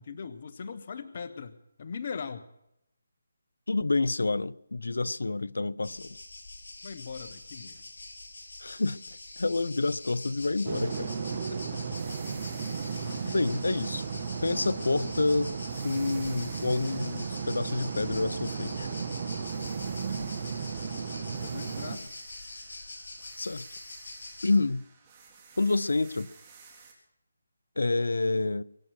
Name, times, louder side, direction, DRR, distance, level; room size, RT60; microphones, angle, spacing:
voice 1, 0.0-2.5 6.8-7.8 10.6-10.7 11.3-11.8 13.0-13.4 21.4-22.1, left 5 dB, 45° left, 1.1 m, -40 dB
voice 2, 3.7-6.2 8.6-9.0 9.4-11.1 13.2-14.0 14.4-15.5 15.8-18.9 23.4-23.6 24.4-24.9 25.6-26.3 27.8-28.6, left 3 dB, 85° left, 0.6 m, -28 dB
sound 1, 5.8-24.6, left 2 dB, 60° left, 5.9 m, -44 dB
sound 2, 10.6-22.0, right 6 dB, 35° right, 1.8 m, -35 dB
sound 3, 11.9-15.2 15.7-19.0 19.4-26.9, right 5 dB, 20° right, 3.5 m, -55 dB
23.5 x 9.4 x 6.3 m
figure-of-eight pair, 160°, 0 cm